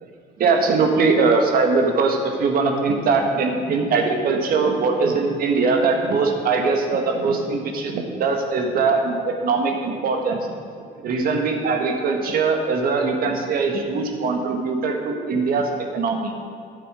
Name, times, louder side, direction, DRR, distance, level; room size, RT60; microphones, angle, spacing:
voice 1, 0.4-10.5 11.0-16.3, right 4 dB, 60° right, 3 dB, 1.6 m, -21 dB
13.0 x 7.5 x 4.9 m, 2.3 s
cardioid pair, 110°, 17 cm